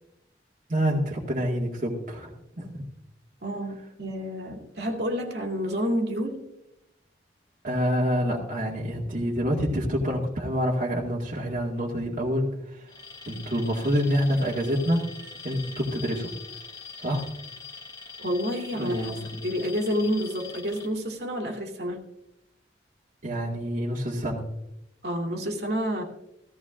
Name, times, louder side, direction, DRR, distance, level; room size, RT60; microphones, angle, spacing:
voice 1, 0.7-2.8 7.6-12.9 13.3-15.1 15.4-16.3 17.0-17.3 18.8-19.2 23.2-24.4, equal, 45° right, 1.9 m, -27 dB
voice 2, 3.4-6.4 18.2-22.1 25.0-26.0, equal, 60° right, 2.3 m, -29 dB
Alarm, 12.9-20.9, left 5 dB, 20° left, 2.0 m, -43 dB
16.0 x 15.0 x 2.5 m
head